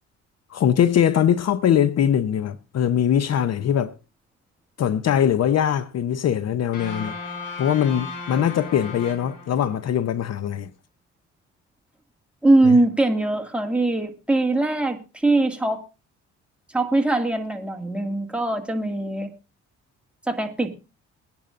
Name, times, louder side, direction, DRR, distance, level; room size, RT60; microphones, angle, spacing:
voice 1, 0.5-3.9 4.8-7.1 7.6-10.7 12.7-12.8, left 9 dB, 60° left, 0.7 m, -21 dB
sound 1, 6.7-10.0, left 3 dB, 80° left, 4.7 m, -36 dB
voice 2, 12.4-15.8 16.7-19.3 20.3-20.7, right 2 dB, 5° right, 2.0 m, -21 dB
22.0 x 10.5 x 2.5 m
cardioid pair, 90°, 30 cm